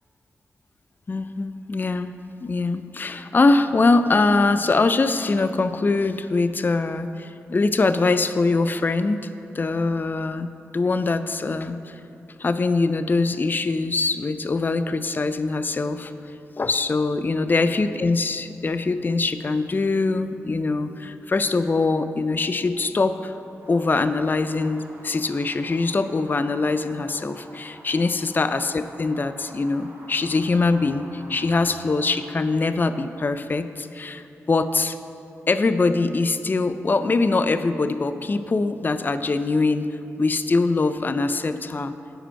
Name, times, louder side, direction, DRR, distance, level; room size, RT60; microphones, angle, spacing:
voice 1, 1.1-9.3 9.5-12.0 12.4-16.1 16.6-23.3 23.7-35.0 35.5-39.9 40.2-42.0, left 3 dB, 35° left, 11 dB, 0.4 m, -23 dB
sound 1, 23.6-32.4, right 1 dB, 65° right, 2.0 m, -48 dB
9.9 x 5.0 x 4.5 m, 2.8 s
cardioid pair, 45°, 6 cm